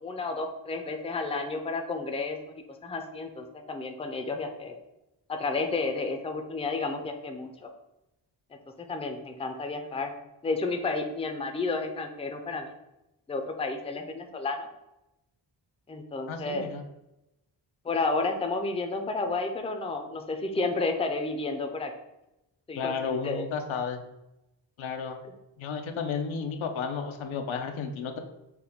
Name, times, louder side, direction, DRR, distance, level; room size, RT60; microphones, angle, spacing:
voice 1, 0.0-2.4 2.8-4.8 5.3-7.7 8.8-10.1 10.4-12.7 13.3-14.7 15.9-16.7 17.8-21.9 22.7-23.4, left 3 dB, 15° left, 5 dB, 0.4 m, -31 dB
voice 2, 16.3-16.8 22.7-24.0 24.8-25.2 25.6-28.2, left 5 dB, 90° left, 5 dB, 0.6 m, -32 dB
5.8 x 2.2 x 3.5 m, 0.91 s
wide cardioid pair, 95°, 47 cm